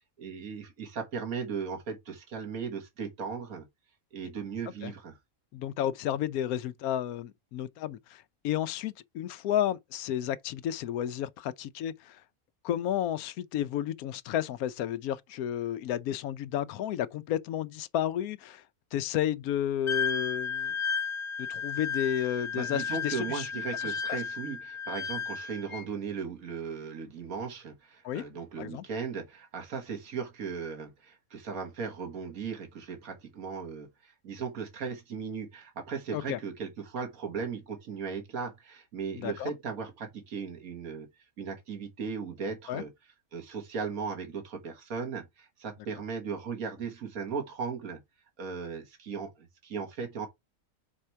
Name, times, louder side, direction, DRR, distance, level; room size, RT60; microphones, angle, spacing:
voice 1, 0.2-3.7 4.1-5.2 22.5-41.1 41.4-42.9 43.3-48.0 48.4-50.3, right 5 dB, 75° right, 1.9 m, -37 dB
voice 2, 5.5-12.2 12.6-18.6 18.9-20.7 21.4-23.5 23.7-24.2 28.0-28.2 28.6-28.8 36.1-36.4 39.2-39.5 42.7-42.8, left 11 dB, 80° left, 1.0 m, -32 dB
Wind instrument woodwind instrument, 19.9-25.9, left 6 dB, 40° left, 0.4 m, -33 dB
4.5 x 4.2 x 5.6 m
omnidirectional pair, 1.5 m